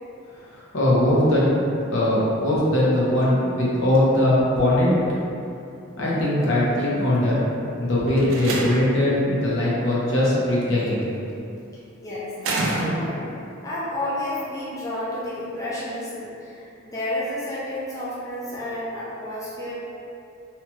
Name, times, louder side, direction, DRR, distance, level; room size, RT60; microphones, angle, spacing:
voice 1, 0.5-1.6 1.9-4.9 6.0-7.4 7.8-11.0, left 1 dB, 70° left, -7 dB, 0.7 m, -20 dB
Slam, 8.1-9.1 10.6-11.0 12.4-13.4, right 2 dB, 75° right, 0.4 m, -28 dB
voice 2, 12.0-13.3 13.6-19.8, left 1 dB, 15° left, -9 dB, 0.4 m, -31 dB
2.8 x 2.2 x 2.9 m, 2.7 s
head